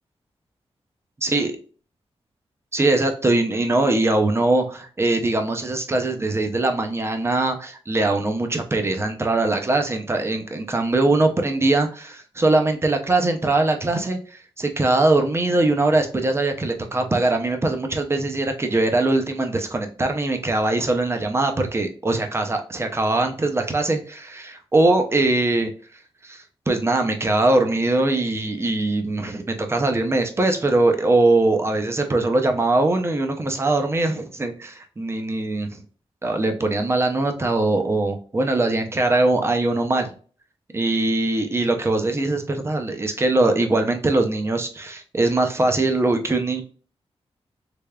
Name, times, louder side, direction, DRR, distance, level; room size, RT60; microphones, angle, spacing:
voice 1, 1.2-1.5 2.7-25.7 26.2-35.8 36.2-40.1 40.7-46.6, right 2 dB, 25° right, 5 dB, 0.6 m, -21 dB
3.4 x 3.4 x 2.3 m, 0.41 s
wide cardioid pair, 125°, 11 cm